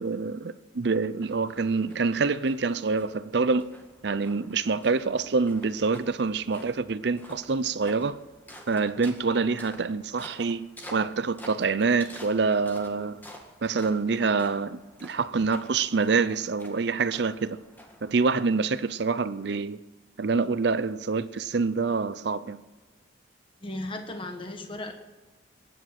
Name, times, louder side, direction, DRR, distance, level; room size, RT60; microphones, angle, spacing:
voice 1, 0.0-3.7 4.0-8.2 8.7-13.2 13.6-17.6 18.0-19.8 20.2-22.6, right 4 dB, 60° right, 0.5 m, -26 dB
sound 1, 1.2-18.9, equal, 10° left, 1.8 m, -50 dB
voice 2, 23.6-24.9, left 1 dB, 25° left, 1.2 m, -36 dB
23.0 x 10.0 x 5.9 m
head